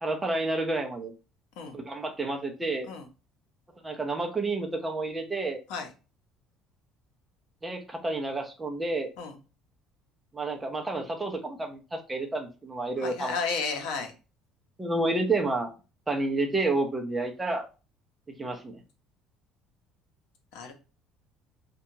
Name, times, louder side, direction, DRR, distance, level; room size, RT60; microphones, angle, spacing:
voice 1, 0.0-1.1 1.7-2.9 3.8-5.6 7.6-9.1 10.3-13.3 14.8-15.7 16.1-17.6 18.3-18.8, right 2 dB, 10° right, 3 dB, 0.5 m, -30 dB
voice 2, 13.0-14.1 20.5-20.7, left 5 dB, 80° left, 4 dB, 0.7 m, -33 dB
2.8 x 2.2 x 2.6 m, 0.32 s
cardioid pair, 150°, 0 cm